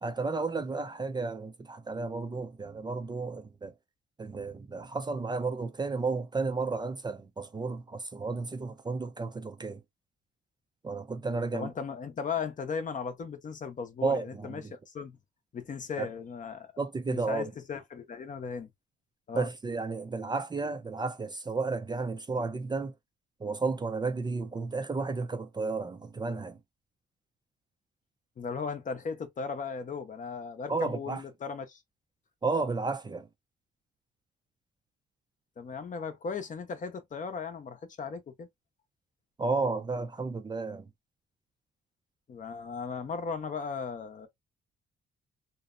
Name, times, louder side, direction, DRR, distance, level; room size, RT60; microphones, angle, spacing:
voice 1, 0.0-3.7 4.2-9.8 10.8-11.7 14.0-14.7 16.0-16.1 16.8-17.5 19.3-22.9 23.4-26.6 30.7-31.2 32.4-33.3 39.4-40.9, right 4 dB, 20° right, 0.4 m, -32 dB
voice 2, 11.5-15.2 15.5-16.7 17.1-18.7 19.3-19.5 28.4-31.8 35.6-38.5 42.3-44.3, left 5 dB, 40° left, 0.7 m, -37 dB
2.7 x 2.1 x 2.4 m
cardioid pair, 90°, 20 cm